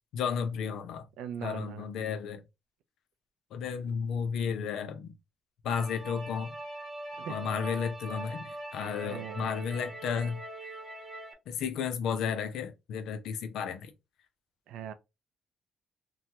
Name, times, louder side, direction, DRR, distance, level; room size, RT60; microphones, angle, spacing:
voice 1, 0.1-1.1 1.4-2.4 3.5-5.1 5.6-6.6 7.3-10.7 11.5-13.9, left 6 dB, 80° left, 0.6 m, -33 dB
voice 2, 1.2-1.9 7.1-7.3 9.0-9.5 14.7-14.9, right 9 dB, 85° right, 0.4 m, -40 dB
sound 1, 5.7-11.3, right 1 dB, 15° right, 1.0 m, -42 dB
3.0 x 2.2 x 2.8 m
cardioid pair, 130°, 0 cm